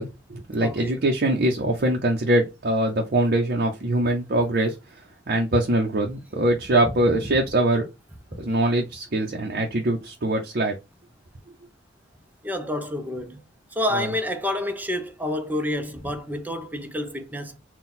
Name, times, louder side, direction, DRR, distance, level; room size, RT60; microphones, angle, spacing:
voice 1, 0.0-4.7 5.3-7.8 8.4-10.7 13.9-14.1, right 1 dB, 50° right, 0.7 m, -23 dB
voice 2, 0.6-1.0 8.3-8.4 12.4-13.4 13.7-17.6, left 1 dB, 10° right, 0.6 m, -29 dB
3.8 x 2.3 x 4.2 m
head